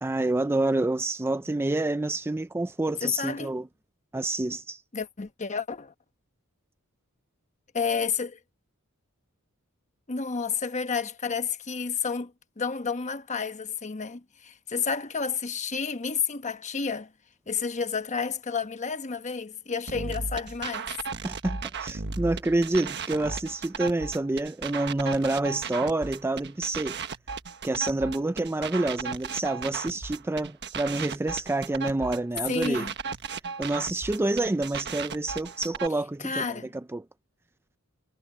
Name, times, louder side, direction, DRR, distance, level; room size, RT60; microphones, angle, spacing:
voice 1, 0.0-3.7 4.1-4.8 21.2-27.0 27.6-32.9 33.6-36.6 36.9-37.0, right 2 dB, 10° right, 0.4 m, -28 dB
voice 2, 3.0-3.5 4.9-5.9 7.7-8.4 10.1-12.3 12.6-17.1 17.5-20.9 32.5-32.9 36.2-36.7, left 5 dB, 35° left, 1.1 m, -30 dB
sound 1, 19.9-35.9, right 5 dB, 50° right, 1.3 m, -35 dB
head